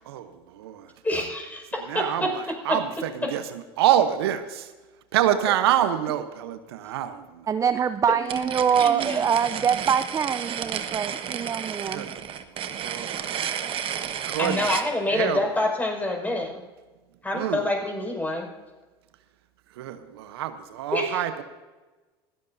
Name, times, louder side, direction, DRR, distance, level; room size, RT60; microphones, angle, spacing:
voice 1, 0.1-0.9 1.9-4.7 5.1-7.5 11.9-12.2 12.6-13.5 14.2-14.7 15.1-15.4 17.3-17.6 19.8-21.4, right 11 dB, 80° right, 10 dB, 1.0 m, -27 dB
voice 2, 1.0-2.3 2.7-2.8 8.8-9.2 14.4-16.6 17.2-18.5 20.9-21.2, left 1 dB, 10° left, 0 dB, 5.9 m, -27 dB
voice 3, 7.5-12.1, right 7 dB, 25° right, 12 dB, 0.5 m, -24 dB
sound 1, 8.3-14.9, right 9 dB, 45° right, 1.3 m, -32 dB
20.5 x 16.0 x 2.7 m, 1.2 s
hypercardioid pair, 80°, 13 cm